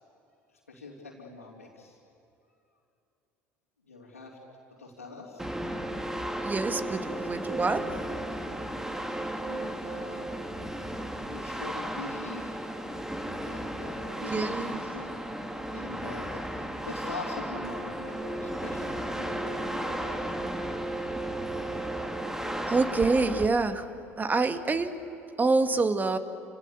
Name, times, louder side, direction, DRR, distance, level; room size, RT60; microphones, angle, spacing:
voice 1, 0.7-2.0 3.9-4.4 4.8-5.5 9.5-10.3 11.3-12.5 13.4-15.1 15.7-20.3, left 3 dB, 85° left, -6 dB, 3.5 m, -43 dB
sound 1, 5.4-23.5, right 1 dB, 5° right, 2.3 m, -34 dB
voice 2, 6.4-8.0 14.3-14.8 22.7-23.9 24.2-24.9 25.4-26.2, right 3 dB, 20° right, 9 dB, 2.0 m, -26 dB
29.5 x 27.5 x 7.1 m, 2.7 s
figure-of-eight pair, 60°, 8 cm